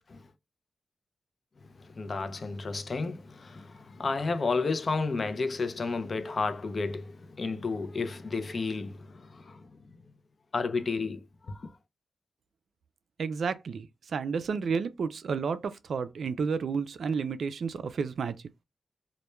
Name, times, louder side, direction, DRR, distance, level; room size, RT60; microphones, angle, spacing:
voice 1, 1.8-9.9 10.5-11.7, left 4 dB, 45° left, 0.4 m, -32 dB
voice 2, 13.2-18.4, right 5 dB, 70° right, 0.3 m, -31 dB
2.2 x 2.1 x 3.0 m
cardioid pair, 90°, 0 cm